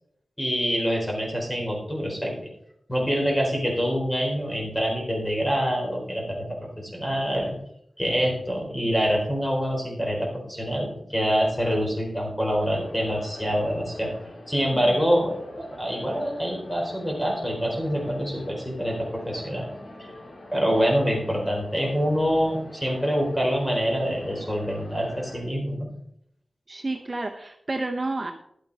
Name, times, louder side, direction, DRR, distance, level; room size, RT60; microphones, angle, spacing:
voice 1, 0.4-2.3 2.9-6.5 6.8-7.6 8.0-14.1 14.5-19.7 20.0-20.1 20.5-25.9, equal, 10° left, -1 dB, 4.2 m, -25 dB
sound 1, 12.5-25.4, left 1 dB, 75° left, 3.5 m, -44 dB
voice 2, 26.7-28.3, right 2 dB, 35° right, 4 dB, 0.8 m, -30 dB
11.5 x 8.8 x 4.1 m, 0.73 s
wide cardioid pair, 75°, 0 cm